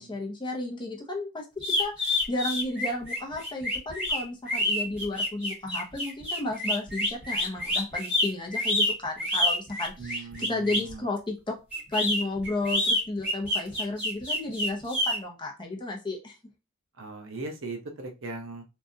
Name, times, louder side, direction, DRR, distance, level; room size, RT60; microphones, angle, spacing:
voice 1, 0.0-1.4 1.8-11.6 11.9-16.4, left 2 dB, 20° left, 0 dB, 0.8 m, -33 dB
sound 1, 1.6-10.9 11.7-15.2, left 1 dB, 5° right, 1.8 m, -27 dB
voice 2, 10.0-11.1 17.0-18.6, right 3 dB, 60° right, 3 dB, 0.8 m, -39 dB
3.6 x 2.4 x 2.7 m, 0.27 s
head